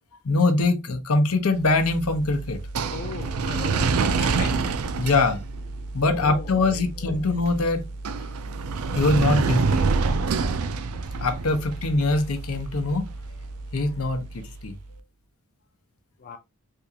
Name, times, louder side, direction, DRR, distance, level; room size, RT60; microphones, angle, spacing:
voice 1, 0.2-2.6 5.0-5.4 5.9-7.9 8.9-9.8 11.2-13.1 13.7-14.7, left 3 dB, 85° left, 0.7 m, -23 dB
sound 1, 1.6-14.7, right 4 dB, 85° right, 0.4 m, -28 dB
voice 2, 2.9-4.8 6.0-7.1 11.4-11.7 13.9-14.2 16.2-16.4, left 5 dB, 40° left, 0.4 m, -39 dB
3.5 x 2.5 x 2.8 m
head